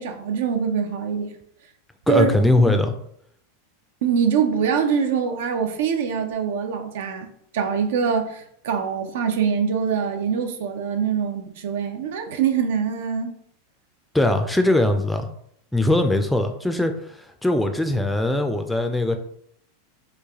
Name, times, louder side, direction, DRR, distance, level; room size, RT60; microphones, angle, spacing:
voice 1, 0.0-1.3 2.1-2.4 4.0-7.3 7.5-13.3, right 6 dB, 75° right, 6 dB, 0.5 m, -24 dB
voice 2, 2.1-2.9 14.1-15.3 15.7-19.2, left 1 dB, 5° left, 6 dB, 0.4 m, -21 dB
3.1 x 2.3 x 3.6 m, 0.69 s
hypercardioid pair, 120°, 0 cm